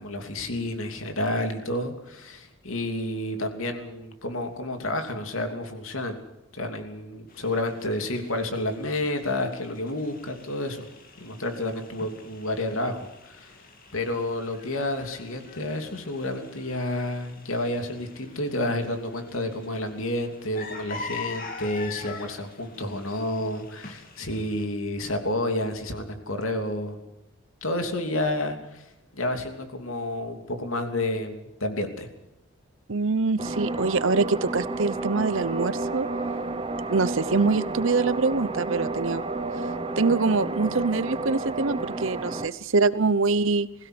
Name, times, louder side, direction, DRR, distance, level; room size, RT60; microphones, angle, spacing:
voice 1, 0.0-6.2 6.5-10.9 11.2-13.6 13.9-27.0 27.6-28.8 29.1-32.1, left 1 dB, 75° left, 6 dB, 3.0 m, -30 dB
sound 1, 7.3-24.7, left 4 dB, 40° left, 2.6 m, -44 dB
voice 2, 32.9-36.1 36.9-39.2 40.0-43.7, right 4 dB, 65° right, 16 dB, 0.8 m, -24 dB
sound 2, 33.4-42.5, right 2 dB, 25° right, 0.9 m, -31 dB
21.5 x 16.0 x 8.0 m, 0.90 s
head